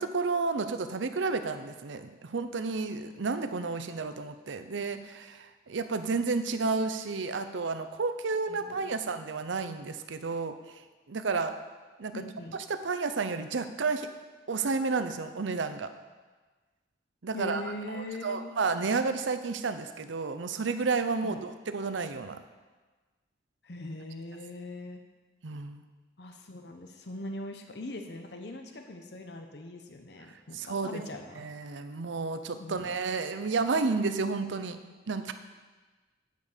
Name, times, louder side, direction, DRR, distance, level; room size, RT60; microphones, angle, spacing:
voice 1, 0.0-10.5 11.1-11.5 12.0-12.1 12.7-14.1 14.5-15.9 17.2-17.6 17.9-22.4 25.4-25.8 30.5-31.0 31.4-34.8 35.1-35.3, right 4 dB, 85° right, 9 dB, 0.6 m, -31 dB
voice 2, 8.5-9.0 12.1-12.6 17.3-18.5 21.2-21.4 23.6-25.0 26.2-31.5 32.6-33.0, left 1 dB, 65° left, 5 dB, 0.8 m, -41 dB
9.5 x 5.3 x 6.6 m, 1.3 s
head